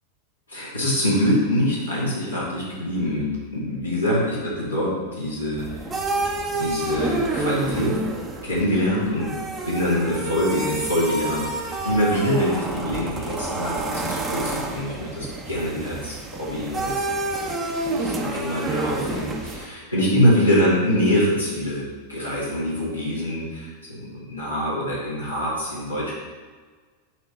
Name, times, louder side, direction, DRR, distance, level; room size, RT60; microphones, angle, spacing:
voice 1, 0.5-5.9 6.5-7.9 8.4-9.3 9.6-17.0 17.8-26.1, equal, 85° left, -8 dB, 2.0 m, -24 dB
sound 1, 5.6-19.7, right 2 dB, 20° right, 0.8 m, -29 dB
8.2 x 3.2 x 5.4 m, 1.4 s
figure-of-eight pair, 90°, 0 cm